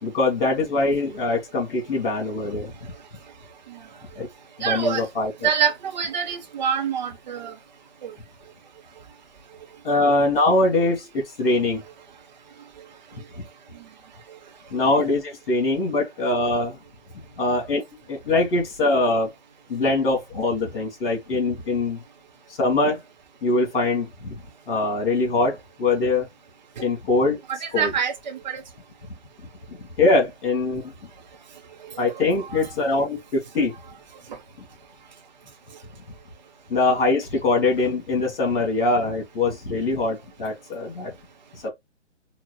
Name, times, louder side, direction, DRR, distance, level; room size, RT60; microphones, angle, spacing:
voice 1, 0.0-2.7 4.2-4.3 4.6-5.3 9.8-11.8 14.7-16.8 17.4-17.8 18.1-19.3 19.7-22.0 22.6-23.0 23.4-24.4 24.7-26.3 26.8-27.4 27.7-27.9 30.0-30.8 32.0-33.7 36.7-41.1 41.6-41.7, left 2 dB, 50° left, 2.8 m, -22 dB
voice 2, 4.6-5.1 5.4-7.5 8.0-8.1 27.5-28.6 32.0-32.6 34.3-34.4, right 7 dB, 35° right, 1.0 m, -26 dB
5.7 x 2.5 x 3.2 m
figure-of-eight pair, 135°, 37 cm